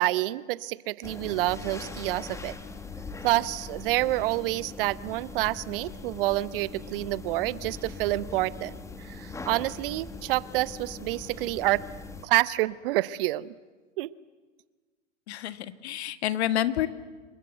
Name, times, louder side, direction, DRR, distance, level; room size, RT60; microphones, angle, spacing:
voice 1, 0.0-2.6 3.2-11.8 12.2-13.5 14.0-14.1, right 18 dB, 45° right, 19 dB, 0.8 m, -28 dB
sound 1, 1.0-12.3, left 3 dB, 10° left, 1.7 m, -41 dB
voice 2, 15.3-16.9, left 12 dB, 60° left, 12 dB, 1.6 m, -28 dB
27.5 x 23.0 x 8.0 m, 1.3 s
hypercardioid pair, 110°, 37 cm